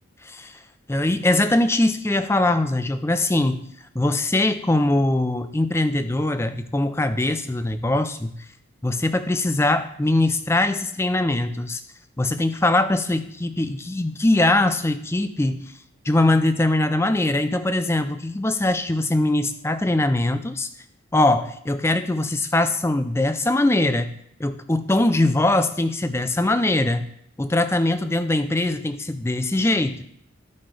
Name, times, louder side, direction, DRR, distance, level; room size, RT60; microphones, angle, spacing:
voice 1, 0.2-0.5 0.9-3.7 3.9-8.4 8.8-11.8 12.2-15.7 16.0-20.7 21.1-24.1 24.4-27.1 27.4-30.0, left 2 dB, 10° left, 10 dB, 0.4 m, -22 dB
14.0 x 5.4 x 3.4 m, 0.70 s
head